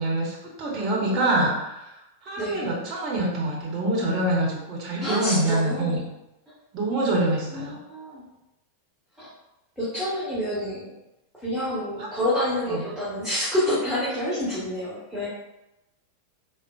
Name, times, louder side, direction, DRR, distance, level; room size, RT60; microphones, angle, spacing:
voice 1, 0.0-1.9 2.2-6.0 6.7-7.8 12.7-12.8, right 1 dB, 35° right, -2 dB, 0.7 m, -25 dB
voice 2, 0.8-1.6 2.4-2.6 5.0-5.9 7.5-8.2 9.2-9.3 9.8-10.9 11.4-15.3, left 1 dB, ahead, -11 dB, 1.0 m, -28 dB
3.6 x 2.0 x 2.3 m, 0.92 s
figure-of-eight pair, 90°, 0 cm